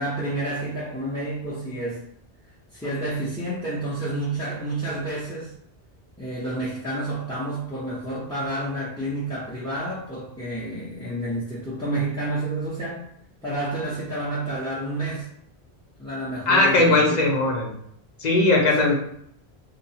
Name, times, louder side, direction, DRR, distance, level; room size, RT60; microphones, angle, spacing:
voice 1, 0.0-2.1 2.7-5.5 6.2-13.1 13.4-15.3 16.0-17.5 18.8-18.9, right 1 dB, 5° left, -10 dB, 0.6 m, -29 dB
voice 2, 16.5-17.7 18.2-18.9, left 2 dB, 50° left, -1 dB, 0.7 m, -19 dB
2.9 x 2.1 x 2.7 m, 0.68 s
omnidirectional pair, 1.1 m